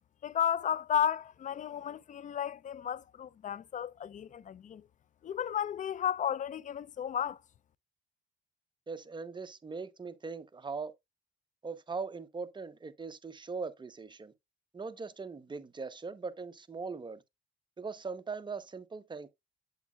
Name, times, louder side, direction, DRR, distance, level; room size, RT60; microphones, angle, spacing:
voice 1, 0.2-4.8 5.2-7.4, left 9 dB, 40° left, 0.4 m, -33 dB
voice 2, 8.9-10.9 11.6-14.3 14.7-17.2 17.8-19.3, right 4 dB, 25° right, 0.8 m, -40 dB
7.9 x 7.3 x 2.3 m
cardioid pair, 90°, 20 cm